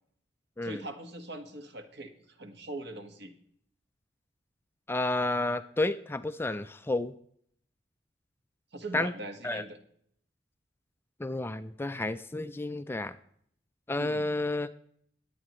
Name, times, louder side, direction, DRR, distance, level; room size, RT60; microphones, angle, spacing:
voice 1, 0.6-3.3 8.7-9.8 14.0-14.3, right 1 dB, 65° right, 6 dB, 1.5 m, -41 dB
voice 2, 4.9-7.1 8.9-9.1 9.4-9.6 11.2-13.2 13.9-14.7, left 2 dB, 10° left, 11 dB, 0.4 m, -31 dB
20.0 x 8.5 x 3.1 m, 0.65 s
head